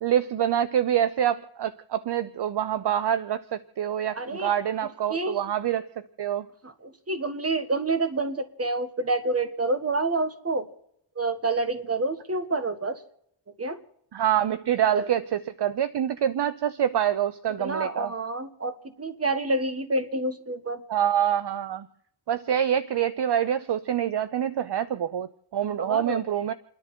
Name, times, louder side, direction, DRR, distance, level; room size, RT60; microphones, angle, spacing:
voice 1, 0.0-6.5 14.1-18.1 20.9-21.9 22.3-26.5, right 10 dB, 55° right, 14 dB, 0.7 m, -26 dB
voice 2, 4.1-4.5 5.1-5.4 6.6-10.7 11.1-13.0 13.6-13.8 14.9-15.1 17.6-20.8 25.8-26.5, right 2 dB, 30° right, 10 dB, 1.7 m, -28 dB
29.5 x 10.5 x 4.5 m, 0.74 s
cardioid pair, 60°, 49 cm